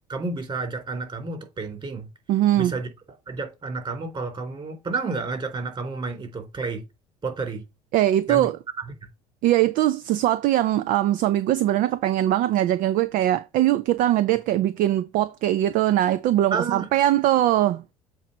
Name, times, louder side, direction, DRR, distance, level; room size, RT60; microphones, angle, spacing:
voice 1, 0.1-2.1 2.6-2.9 3.3-6.8 7.2-7.6 8.3-8.5 16.5-16.9, right 4 dB, 30° right, 3.4 m, -30 dB
voice 2, 2.3-2.8 7.9-8.6 9.4-17.8, right 13 dB, 50° right, 0.5 m, -21 dB
7.4 x 3.1 x 5.2 m
figure-of-eight pair, 65°, 18 cm